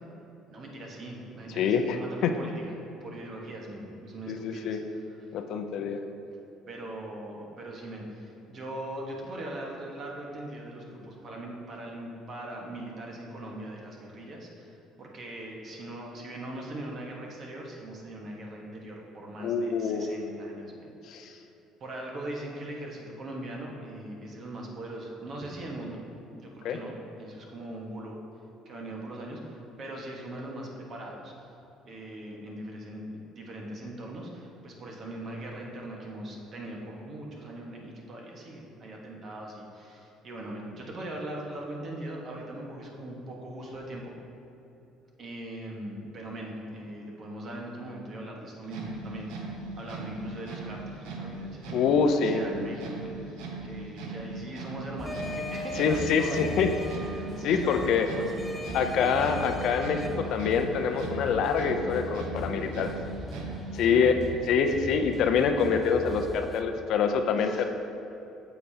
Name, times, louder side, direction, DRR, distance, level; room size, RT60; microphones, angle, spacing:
voice 1, 0.5-2.7 3.0-5.0 6.7-21.4 21.8-26.0 26.3-28.2 28.6-31.5 31.8-33.0 33.3-44.1 45.2-49.3 49.8-51.9 52.2-53.4 53.6-56.5 57.2-58.3 60.0-60.1 63.8-64.0 67.4-67.6, right 1 dB, 50° right, -1 dB, 1.4 m, -40 dB
voice 2, 1.6-2.0 2.2-2.3 4.3-4.8 5.3-6.0 19.4-20.1 21.1-21.3 26.6-26.8 51.7-52.4 55.8-56.7 57.4-58.1 58.7-60.0 60.3-62.9 63.7-64.2 64.5-67.6, left 6 dB, 65° left, 6 dB, 0.5 m, -25 dB
sound 1, 48.6-63.9, right 3 dB, 80° right, 0.9 m, -39 dB
sound 2, 55.0-66.6, left 1 dB, 10° left, 0.5 m, -40 dB
sound 3, 55.1-60.1, left 1 dB, 10° right, 0.9 m, -40 dB
8.4 x 7.0 x 2.9 m, 2.8 s
supercardioid pair, 80°, 0 cm